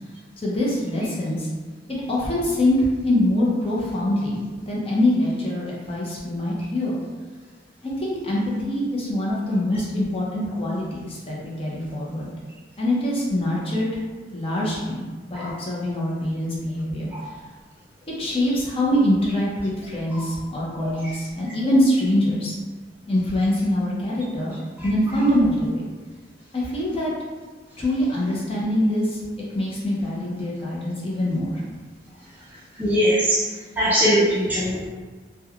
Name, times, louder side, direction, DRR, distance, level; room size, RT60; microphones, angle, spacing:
voice 1, 0.4-1.5 1.9-2.8 3.0-4.4 4.7-7.0 7.8-12.3 12.8-13.9 14.3-17.1 18.2-22.5 23.1-24.5 24.8-25.9 26.5-27.1 27.8-29.2 29.5-31.6 34.7-34.8, left 1 dB, 30° left, -5 dB, 0.6 m, -24 dB
voice 2, 32.8-33.5 33.8-34.9, equal, 10° right, -7 dB, 0.4 m, -21 dB
3.0 x 2.2 x 2.3 m, 1.4 s
head